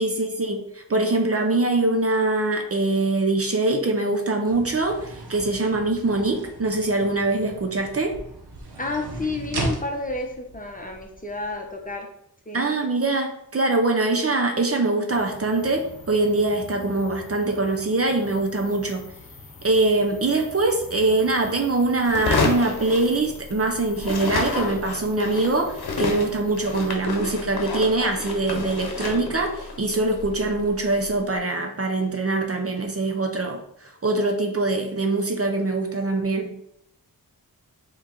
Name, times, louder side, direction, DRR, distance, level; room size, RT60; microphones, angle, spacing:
voice 1, 0.0-8.2 12.5-19.0 19.6-36.5, right 2 dB, 40° right, 3 dB, 0.5 m, -23 dB
sound 1, 4.5-11.9, right 1 dB, 80° right, 0.8 m, -36 dB
voice 2, 8.8-12.1 12.5-12.7, left 2 dB, 20° left, 2 dB, 0.7 m, -31 dB
sound 2, 15.1-27.0, left 3 dB, 55° left, 0.8 m, -45 dB
sound 3, 22.0-23.7 24.0-31.2, left 3 dB, 75° left, 0.8 m, -30 dB
4.6 x 3.1 x 3.8 m, 0.74 s
wide cardioid pair, 90°, 38 cm